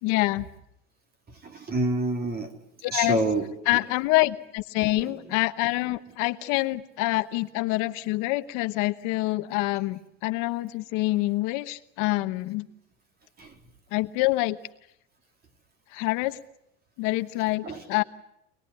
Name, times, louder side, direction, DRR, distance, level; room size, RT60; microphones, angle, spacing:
voice 1, 0.0-0.5 2.8-3.2 3.7-12.7 13.9-14.6 15.9-16.4 17.0-18.0, left 20 dB, 60° left, 10 dB, 1.2 m, -26 dB
voice 2, 1.4-2.5 2.9-3.8 5.0-5.1 13.4-13.5 17.6-17.8, right 2 dB, 30° right, 6 dB, 3.6 m, -28 dB
25.5 x 20.0 x 9.7 m, 0.79 s
supercardioid pair, 140°, 33 cm